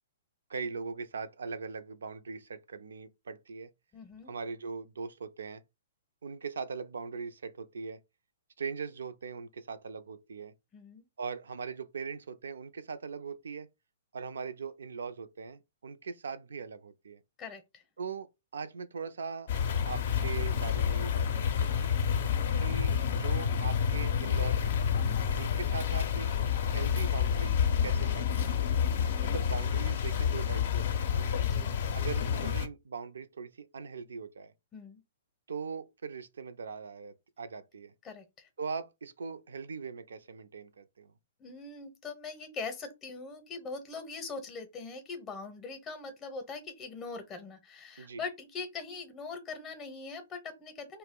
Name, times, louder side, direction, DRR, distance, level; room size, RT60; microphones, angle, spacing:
voice 1, 0.5-3.7 4.3-5.6 6.2-8.0 8.6-10.5 11.2-13.7 14.1-17.2 18.0-19.5 19.8-21.9 22.5-24.8 25.4-26.3 26.7-28.8 29.2-30.9 31.1-31.3 31.9-34.5 35.5-37.9 38.6-41.1 48.0-48.2, right 5 dB, 75° right, 0.3 m, -40 dB
voice 2, 3.9-4.3 10.7-11.0 17.4-17.8 25.0-25.3 27.7-28.0 29.1-29.4 31.4-31.7 34.7-35.0 38.0-38.5 41.4-51.0, left 4 dB, 20° left, 0.6 m, -42 dB
sound 1, 19.5-32.7, left 7 dB, 60° left, 0.5 m, -29 dB
2.3 x 2.0 x 3.5 m
hypercardioid pair, 120°, 0 cm